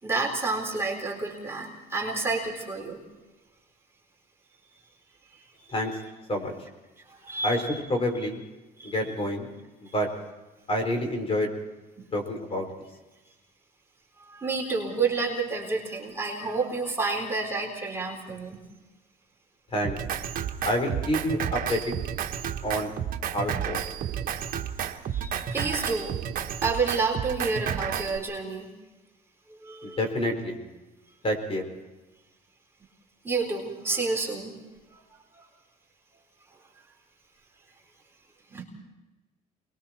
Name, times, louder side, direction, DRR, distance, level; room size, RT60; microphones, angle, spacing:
voice 1, 0.0-3.0 5.6-5.8 7.2-7.8 8.8-8.9 12.0-12.1 14.2-18.6 25.1-26.1 26.6-28.7 29.5-30.0 33.2-34.6 35.4-35.5 38.5-38.6, right 4 dB, 15° right, -3 dB, 4.1 m, -30 dB
voice 2, 7.9-8.4 8.8-9.5 9.8-10.1 10.7-11.5 12.1-12.7 19.7-20.0 20.6-21.9 22.6-22.9 23.3-23.8 29.8-30.6 31.2-31.6, equal, 35° left, 5 dB, 4.3 m, -28 dB
Drum kit, 19.8-28.2, right 9 dB, 55° right, 1.3 m, -31 dB
28.5 x 21.5 x 4.4 m, 1.1 s
cardioid pair, 110°, 17 cm